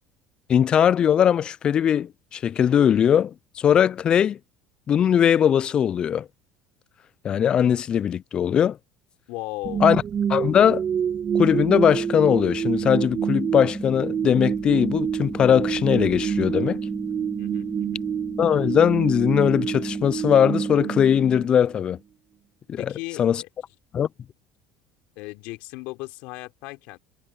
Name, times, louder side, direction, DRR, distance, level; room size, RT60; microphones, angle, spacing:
voice 1, 0.5-4.4 4.9-6.3 7.2-8.8 9.8-10.0 10.3-10.8 11.3-16.8 18.4-22.0 22.7-22.9 23.2-23.4 23.9-24.1, left 9 dB, 40° left, 0.4 m, -20 dB
voice 2, 9.3-9.9 17.4-18.0 22.8-23.5 25.2-27.0, left 23 dB, 70° left, 3.5 m, -36 dB
sound 1, 9.6-21.8, right 8 dB, 40° right, 1.6 m, -27 dB
sound 2, 11.4-21.5, equal, ahead, 1.4 m, -36 dB
hypercardioid pair, 75°, 2 cm